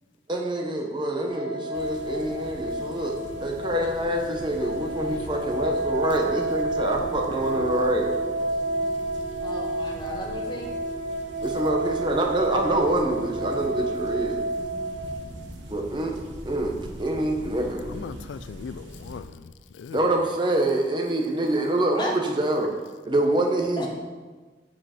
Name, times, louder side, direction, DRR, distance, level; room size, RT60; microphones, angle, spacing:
voice 1, 0.3-8.1 11.4-14.4 15.7-16.2 16.4-16.7 17.0-17.8 19.9-22.7 23.0-23.9, right 1 dB, 25° right, 1.0 m, -26 dB
sound 1, 1.3-15.1, right 1 dB, 45° right, 2.2 m, -30 dB
sound 2, 1.7-19.2, equal, 80° right, 1.2 m, -42 dB
voice 2, 9.4-10.7 22.0-22.1 23.8-23.9, left 1 dB, 25° left, 1.3 m, -33 dB
voice 3, 17.8-20.2, left 6 dB, 80° left, 0.3 m, -40 dB
7.6 x 7.4 x 4.4 m
head